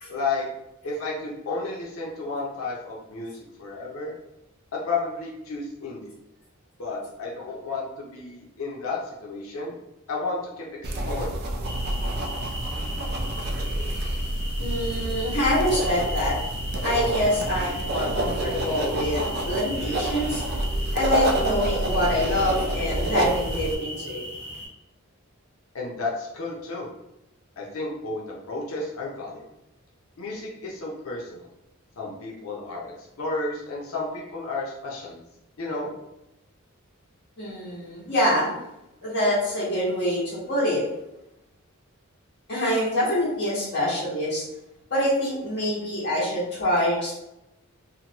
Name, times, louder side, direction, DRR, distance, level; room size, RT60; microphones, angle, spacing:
voice 1, 0.1-0.5 0.8-4.1 4.7-6.2 6.8-9.8 10.1-11.3 25.7-26.9 27.6-29.5 30.2-31.5 32.0-35.2 35.6-35.9, left 3 dB, 80° left, -3 dB, 0.6 m, -32 dB
sound 1, 10.8-23.7, right 1 dB, 50° right, 0.4 m, -28 dB
sound 2, 11.6-24.7, equal, 5° left, 1.0 m, -38 dB
voice 2, 14.6-16.4 16.8-20.4 20.9-24.2 37.4-38.5 39.0-40.8 42.5-44.4 44.9-47.2, left 1 dB, 55° left, -8 dB, 1.4 m, -25 dB
2.8 x 2.1 x 2.9 m, 0.90 s
head